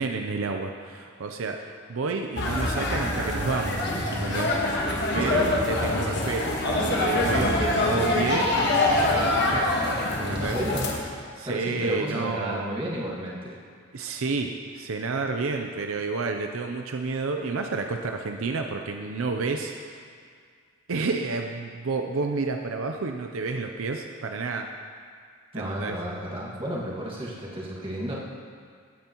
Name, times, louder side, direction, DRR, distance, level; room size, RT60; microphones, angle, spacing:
voice 1, 0.0-1.6 1.9-3.8 4.1-9.7 10.2-10.6 11.3-12.7 13.9-20.0 20.9-24.7 25.6-26.0, right 4 dB, 80° right, 4 dB, 0.6 m, -30 dB
sound 1, 2.4-10.9, left 2 dB, 55° left, 1.4 m, -25 dB
voice 2, 5.2-5.6 10.4-10.9 11.4-13.6 25.5-28.2, right 1 dB, 25° right, -6 dB, 1.9 m, -32 dB
16.0 x 9.1 x 3.0 m, 2.1 s
head